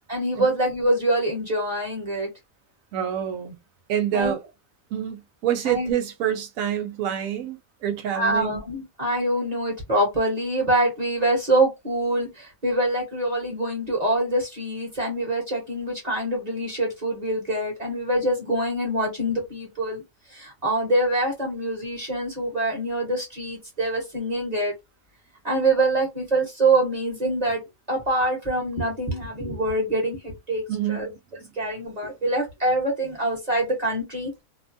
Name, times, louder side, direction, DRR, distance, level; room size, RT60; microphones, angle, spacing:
voice 1, 0.1-2.3 4.1-4.3 5.7-5.9 8.1-20.0 20.3-24.7 25.4-27.6 27.9-30.6 30.9-31.1 31.6-34.4, right 1 dB, 30° right, 1.1 m, -25 dB
voice 2, 2.9-3.6 3.9-4.4 4.9-8.6 30.7-31.5, right 10 dB, 75° right, 1.0 m, -27 dB
2.8 x 2.2 x 2.5 m
omnidirectional pair, 1.4 m